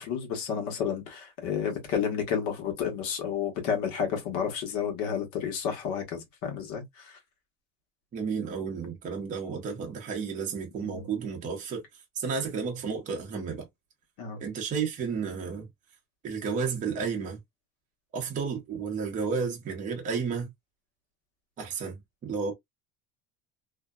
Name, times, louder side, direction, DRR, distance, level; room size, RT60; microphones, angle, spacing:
voice 1, 0.0-7.2 10.8-11.1 14.2-14.4, left 7 dB, 65° left, 1.1 m, -31 dB
voice 2, 8.1-11.8 12.2-13.7 14.4-15.6 16.2-17.4 18.1-20.5 21.6-22.5, right 5 dB, 25° right, 0.7 m, -32 dB
2.6 x 2.1 x 2.2 m
cardioid pair, 170°, 32 cm